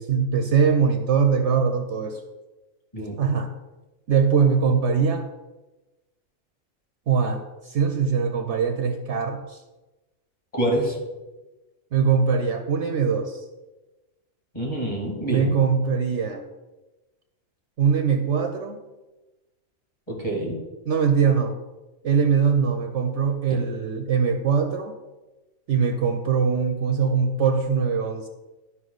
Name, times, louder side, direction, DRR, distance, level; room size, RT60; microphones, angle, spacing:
voice 1, 0.0-2.2 3.2-3.5 4.1-5.3 7.1-9.6 11.9-13.4 15.3-16.4 17.8-18.8 20.9-21.6 22.0-24.9 25.7-28.3, right 6 dB, 65° right, 6 dB, 0.9 m, -22 dB
voice 2, 10.5-11.0 14.5-15.6 20.1-20.6 23.5-23.6, right 1 dB, 25° left, -2 dB, 2.3 m, -26 dB
11.0 x 5.5 x 3.9 m, 1.1 s
omnidirectional pair, 1.4 m